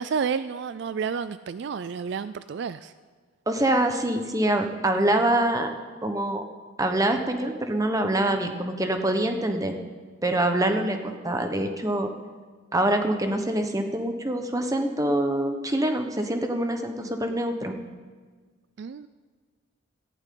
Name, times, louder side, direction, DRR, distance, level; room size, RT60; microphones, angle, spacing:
voice 1, 0.0-2.9 17.0-17.4 18.8-19.1, right 6 dB, 55° right, 14 dB, 0.3 m, -31 dB
voice 2, 3.5-5.7 6.0-6.4 6.8-9.8 10.2-12.1 12.7-17.7, right 1 dB, 15° right, 5 dB, 1.0 m, -25 dB
18.0 x 15.0 x 3.8 m, 1.5 s
head